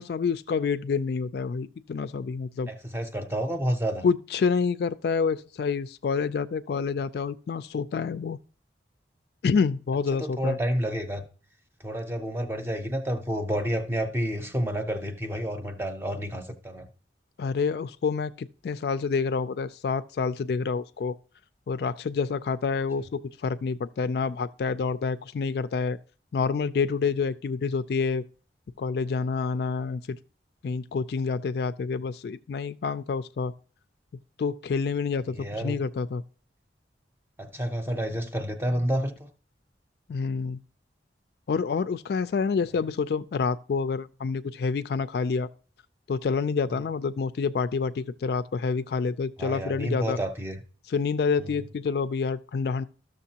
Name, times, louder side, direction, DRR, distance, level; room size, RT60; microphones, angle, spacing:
voice 1, 0.0-2.7 4.0-8.4 9.4-10.6 17.4-21.2 21.7-26.0 26.3-28.2 28.8-30.2 30.6-33.5 34.4-36.2 40.1-40.6 41.5-45.5 46.1-50.2 50.9-52.8, left 5 dB, 60° left, 0.3 m, -28 dB
voice 2, 2.7-4.0 10.1-11.3 11.8-16.9 35.3-35.8 37.4-39.3 49.4-50.6 51.4-51.6, equal, 10° right, 0.7 m, -30 dB
13.0 x 6.5 x 2.8 m
head